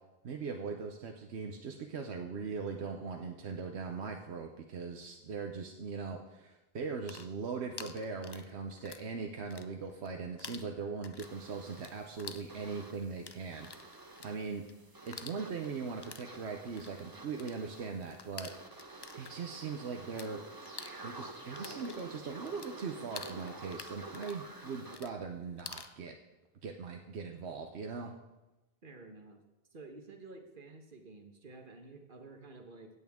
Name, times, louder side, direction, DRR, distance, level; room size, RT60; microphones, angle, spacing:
voice 1, 0.2-14.6 15.0-18.8 19.1-20.4 21.0-26.1 26.6-28.1, right 5 dB, 85° right, 3 dB, 1.1 m, -40 dB
sound 1, 6.8-9.1 9.4-10.1 10.4-20.3 20.6-25.9, left 5 dB, 35° left, 0.4 m, -49 dB
sound 2, 11.2-25.0, right 2 dB, 20° right, 0.9 m, -50 dB
voice 2, 28.8-29.4 29.7-32.9, right 3 dB, 55° right, 4 dB, 1.4 m, -51 dB
16.0 x 8.4 x 3.6 m, 1.0 s
omnidirectional pair, 1.1 m